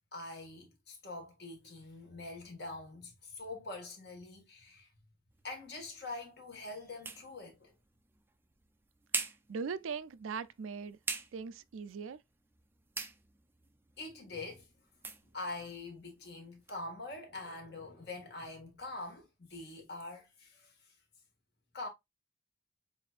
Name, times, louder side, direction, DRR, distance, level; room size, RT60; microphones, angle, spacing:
voice 1, 0.1-4.9 5.4-7.7 14.0-14.7 15.3-20.7 21.7-21.9, left 2 dB, 55° left, 1.7 m, -44 dB
sound 1, 5.3-16.8, right 4 dB, 10° right, 0.4 m, -46 dB
voice 2, 9.5-11.0 11.3-12.2, right 5 dB, 85° right, 0.4 m, -40 dB
7.4 x 2.7 x 2.4 m
head